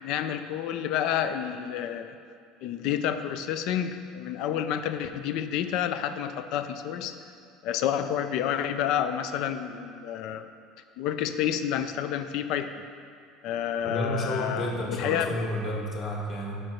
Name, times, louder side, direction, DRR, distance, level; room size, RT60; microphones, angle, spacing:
voice 1, 0.0-2.2 2.6-7.2 7.6-10.5 11.0-12.7 13.4-15.3, left 9 dB, 65° left, 10 dB, 0.4 m, -29 dB
voice 2, 13.8-16.6, equal, 40° left, -2 dB, 1.3 m, -31 dB
5.3 x 4.4 x 6.2 m, 2.3 s
supercardioid pair, 130°, 0 cm